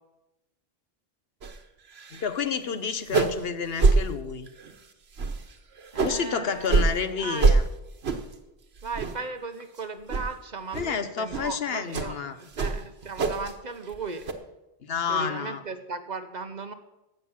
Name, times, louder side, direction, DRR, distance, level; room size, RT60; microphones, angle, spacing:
sound 1, 1.4-1.6 1.9-2.3 2.6-2.7 3.0-3.5 3.8-4.0 4.5-4.8 5.2-6.2 6.7-6.9 7.4-7.6 8.0-8.4 8.8-9.3 9.6-9.8 10.1-10.3 10.7-10.9 11.3-11.5 11.9-12.1 12.5-13.5 13.8-14.3, right 4 dB, 80° right, 1.4 m, -24 dB
voice 1, 2.1-4.5 6.0-7.6 10.7-12.4 14.8-15.6, left 6 dB, 70° left, 11 dB, 1.1 m, -30 dB
voice 2, 5.9-6.8 7.1-7.5 8.8-14.3 15.1-16.7, right 4 dB, 45° right, 9 dB, 1.0 m, -37 dB
15.5 x 6.6 x 7.4 m, 0.96 s
omnidirectional pair, 1.0 m